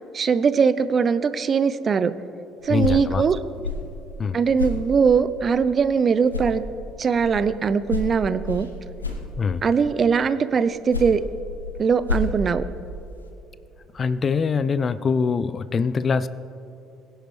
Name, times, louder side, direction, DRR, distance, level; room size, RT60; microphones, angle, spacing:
voice 1, 0.1-2.1 2.6-3.4 4.3-6.6 7.0-8.7 9.6-11.2 11.8-12.6, right 6 dB, 40° right, 14 dB, 0.6 m, -21 dB
sound 1, 2.6-6.0 6.3-9.8 10.6-13.3, left 3 dB, 90° left, 0.8 m, -32 dB
voice 2, 2.7-3.2 4.2-4.4 9.4-9.6 13.9-16.3, left 5 dB, 40° left, 16 dB, 0.4 m, -23 dB
22.0 x 10.5 x 3.2 m, 2.8 s
figure-of-eight pair, 50°, 0 cm